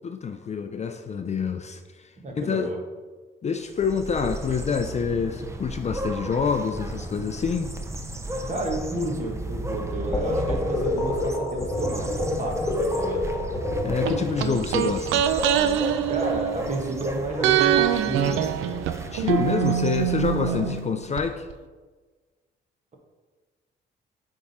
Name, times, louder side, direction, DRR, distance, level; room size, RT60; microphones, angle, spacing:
voice 1, 0.0-2.1 2.3-2.7 3.4-7.7 13.8-15.3 19.1-21.5, left 6 dB, 35° left, 7 dB, 0.5 m, -27 dB
voice 2, 2.2-2.8 8.5-13.2 16.1-18.6 20.5-20.7, right 2 dB, 35° right, 1 dB, 1.6 m, -31 dB
sound 1, 3.6-20.9, right 1 dB, 15° right, 0.7 m, -35 dB
sound 2, 10.1-14.6, left 1 dB, 10° left, 1.7 m, -27 dB
sound 3, 14.1-17.0 17.4-21.2 21.5-21.6, right 10 dB, 90° right, 0.5 m, -24 dB
8.4 x 3.6 x 4.2 m, 1.3 s
cardioid pair, 90°, 20 cm